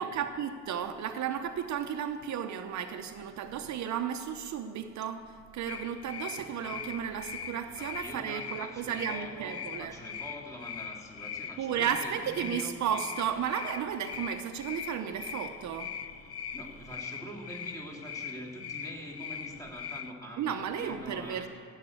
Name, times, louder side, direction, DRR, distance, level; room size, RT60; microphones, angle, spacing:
voice 1, 0.0-9.9 11.6-16.0 20.4-21.5, right 8 dB, 60° right, 8 dB, 0.8 m, -34 dB
sound 1, 5.7-20.1, left 8 dB, 50° left, 0.7 m, -41 dB
voice 2, 7.8-12.7 16.5-21.5, equal, 10° left, -1 dB, 2.9 m, -44 dB
16.0 x 7.4 x 8.4 m, 2.3 s
cardioid pair, 115°, 32 cm